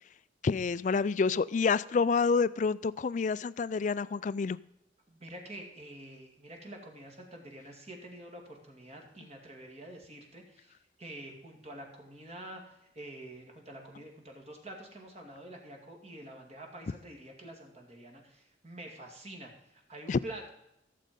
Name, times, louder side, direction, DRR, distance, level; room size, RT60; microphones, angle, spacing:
voice 1, 0.4-4.6 20.1-20.2, left 5 dB, 40° left, 18 dB, 0.3 m, -28 dB
voice 2, 5.1-20.5, right 1 dB, 35° right, 2 dB, 2.4 m, -47 dB
15.5 x 7.5 x 5.3 m, 0.82 s
head